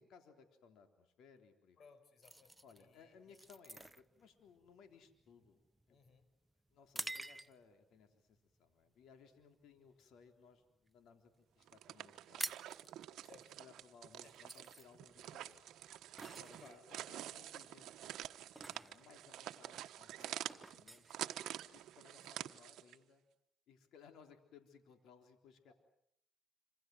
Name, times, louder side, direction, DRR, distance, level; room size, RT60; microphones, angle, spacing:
voice 1, 0.0-1.8 2.6-6.0 6.7-12.5 13.6-15.6 16.4-21.0 21.7-23.2 23.7-25.7, left 6 dB, 80° left, 6 dB, 3.6 m, -63 dB
voice 2, 1.8-3.4 5.9-6.3 13.2-13.5 14.2-14.6 16.6-17.0 18.6-19.0 20.2-20.4 25.7-25.8, left 5 dB, 60° left, 12 dB, 5.1 m, -64 dB
sound 1, 2.2-7.8 8.4-8.6 9.1-9.4 9.8-10.9 11.2-11.3 11.5-11.7 12.0-22.0, right 1 dB, 10° right, 1.1 m, -50 dB
sound 2, 11.6-23.0, right 12 dB, 80° right, 1.2 m, -48 dB
27.5 x 26.5 x 7.8 m, 0.71 s
cardioid pair, 90°, 0 cm